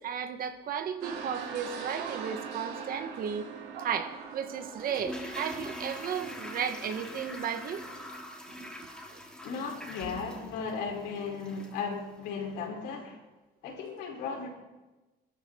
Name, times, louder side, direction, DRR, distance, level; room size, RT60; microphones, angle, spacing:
voice 1, 0.0-3.5 3.8-7.9 8.6-8.7 9.1-9.2, right 7 dB, 60° right, 1.7 m, -34 dB
sound 1, 1.0-8.1, right 6 dB, 90° right, 3.3 m, -42 dB
Toilet flush, 4.8-11.9 12.1-12.2, equal, 5° left, 3.5 m, -43 dB
voice 2, 9.4-13.2 13.6-14.5, left 5 dB, 90° left, 5.2 m, -36 dB
23.0 x 14.0 x 4.0 m
cardioid pair, 110°, 17 cm